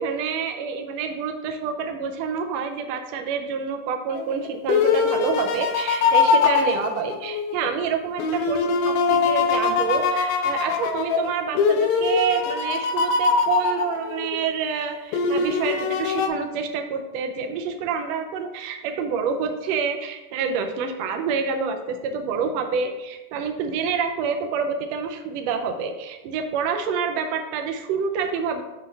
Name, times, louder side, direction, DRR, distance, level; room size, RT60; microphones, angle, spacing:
voice 1, 0.0-28.6, right 6 dB, 80° right, 5 dB, 1.5 m, -27 dB
sound 1, 4.1-7.7 8.2-14.4 15.1-16.3, left 5 dB, 80° left, 2.1 m, -22 dB
7.6 x 3.2 x 4.0 m, 1.0 s
omnidirectional pair, 3.6 m